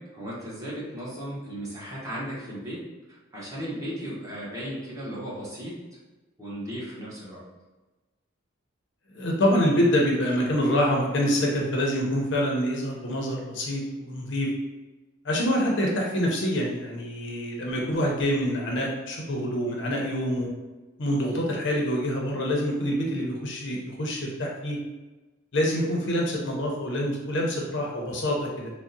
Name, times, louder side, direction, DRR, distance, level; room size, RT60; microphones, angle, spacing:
voice 1, 0.0-2.8 3.3-5.8 6.4-7.4, equal, 15° right, -8 dB, 0.8 m, -36 dB
voice 2, 9.1-14.5 15.2-20.5 21.0-24.8 25.5-28.7, equal, 60° left, -1 dB, 0.6 m, -26 dB
3.5 x 2.0 x 2.6 m, 1.2 s
head